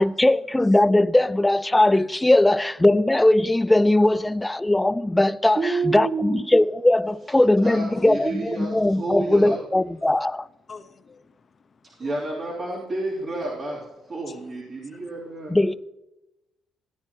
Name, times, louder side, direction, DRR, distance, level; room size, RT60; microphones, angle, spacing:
voice 1, 0.0-10.5 15.5-15.7, left 1 dB, 10° left, 0.3 m, -19 dB
voice 2, 4.0-4.7 7.1-7.2 7.9-8.1 10.7-12.2 14.3-15.5, left 5 dB, 40° left, 0.9 m, -48 dB
voice 3, 5.5-6.5 7.6-9.5 12.0-15.6, right 3 dB, 45° right, 3.1 m, -30 dB
15.5 x 9.8 x 2.9 m
cardioid pair, 90°, 0 cm